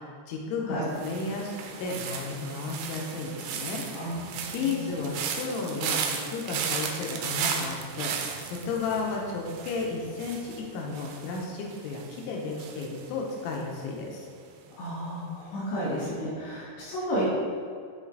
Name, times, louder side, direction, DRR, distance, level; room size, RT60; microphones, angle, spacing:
voice 1, 0.0-1.5 1.8-4.3 4.5-14.3, left 4 dB, 90° left, -1 dB, 3.2 m, -33 dB
sound 1, 0.9-14.0 14.2-14.7, right 7 dB, 90° right, 2.5 m, -36 dB
voice 2, 14.8-17.2, equal, 70° left, -9 dB, 3.3 m, -32 dB
9.5 x 3.3 x 3.8 m, 2.1 s
omnidirectional pair, 5.7 m